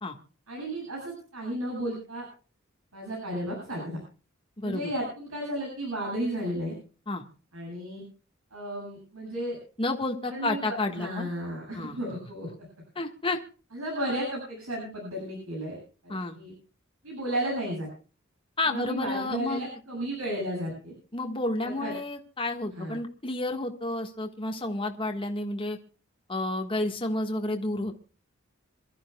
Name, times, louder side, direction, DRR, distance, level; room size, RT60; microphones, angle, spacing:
voice 1, 0.5-2.3 2.9-4.0 4.6-6.7 7.5-8.0 8.5-9.6 10.2-12.5 13.7-15.8 16.0-16.5 17.0-17.9 18.7-20.9 21.6-21.9 22.7-23.0, right 1 dB, 85° right, -1 dB, 7.8 m, -33 dB
voice 2, 4.6-4.9 7.1-7.2 9.8-11.3 11.7-12.0 12.9-13.4 16.1-16.4 18.6-19.7 21.1-25.8 26.3-27.9, left 2 dB, 25° left, 3 dB, 1.5 m, -30 dB
27.0 x 13.0 x 2.3 m, 0.37 s
head